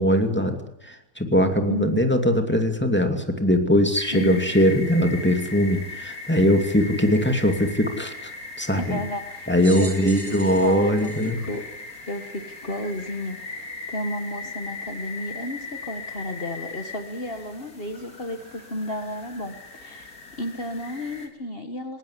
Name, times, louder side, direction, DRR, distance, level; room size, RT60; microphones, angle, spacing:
voice 1, 0.0-8.3 8.6-9.0 9.5-11.4, equal, 5° left, 5 dB, 2.5 m, -21 dB
voice 2, 1.7-2.1 4.1-4.4 8.8-9.5 9.8-11.6 12.1-20.1 20.4-22.0, left 1 dB, 40° left, 7 dB, 1.8 m, -32 dB
Frogs Toads and Night Birds in Utah, 3.9-21.3, left 3 dB, 70° left, 3.8 m, -39 dB
sound 1, 9.6-12.3 13.0-13.1 14.2-14.3, right 1 dB, 45° right, 4.8 m, -41 dB
20.0 x 18.5 x 9.9 m, 0.80 s
omnidirectional pair, 1.6 m